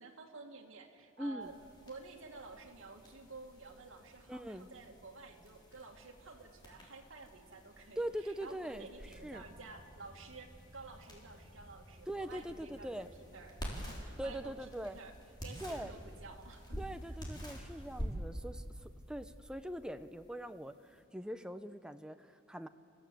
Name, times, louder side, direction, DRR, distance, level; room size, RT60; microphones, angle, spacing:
voice 1, 0.0-1.6 1.9-13.0 13.3-14.5 14.8-15.2 15.4-16.8, right 3 dB, 75° right, 2 dB, 2.2 m, -52 dB
voice 2, 1.2-1.5 4.3-4.7 8.0-9.4 12.1-13.1 14.2-15.0 15.6-15.9 16.8-22.7, right 1 dB, 5° right, 9 dB, 0.6 m, -42 dB
sound 1, 1.4-21.0, equal, 20° left, 4.1 m, -48 dB
29.0 x 15.5 x 7.7 m, 2.5 s
head